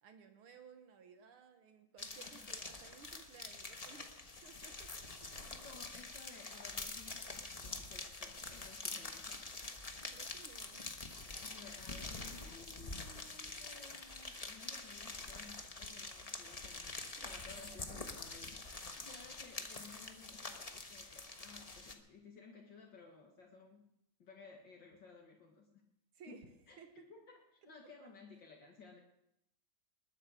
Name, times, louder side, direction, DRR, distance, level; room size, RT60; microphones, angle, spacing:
voice 1, 0.0-5.1 10.1-10.9 16.9-17.3 26.1-26.5 26.8-27.1, right 7 dB, 75° right, 6 dB, 2.0 m, -58 dB
sound 1, 2.0-21.9, left 3 dB, 25° left, 0.8 m, -46 dB
voice 2, 5.5-9.4 11.4-23.9 24.2-25.8 26.3-29.0, left 4 dB, 60° left, 1 dB, 2.3 m, -57 dB
20.5 x 8.9 x 6.5 m, 0.80 s
omnidirectional pair, 2.4 m